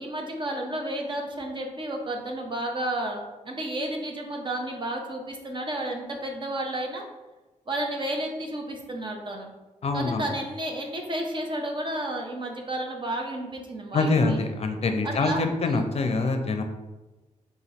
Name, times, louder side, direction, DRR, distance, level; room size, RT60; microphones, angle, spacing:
voice 1, 0.0-7.0 7.7-9.5 9.9-14.4 15.0-15.9, right 1 dB, 40° right, 2 dB, 0.8 m, -32 dB
voice 2, 9.8-10.2 13.9-16.6, left 3 dB, 50° left, 5 dB, 0.5 m, -25 dB
3.8 x 2.9 x 4.2 m, 1.1 s
wide cardioid pair, 110°, 13 cm